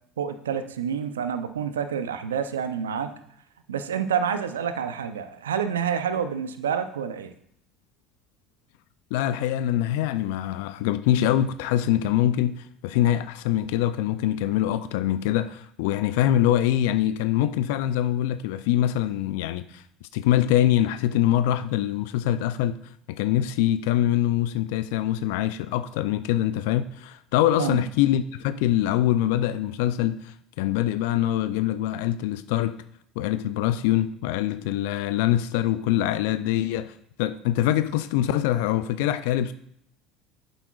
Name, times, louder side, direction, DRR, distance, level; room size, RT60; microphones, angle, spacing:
voice 1, 0.2-3.1 3.7-7.3 27.6-27.8, right 7 dB, 85° right, 0.5 m, -28 dB
voice 2, 9.1-19.8 20.1-22.8 23.1-32.8 33.2-39.5, left 12 dB, 70° left, 0.3 m, -24 dB
9.2 x 7.2 x 2.4 m
hypercardioid pair, 75°, 0 cm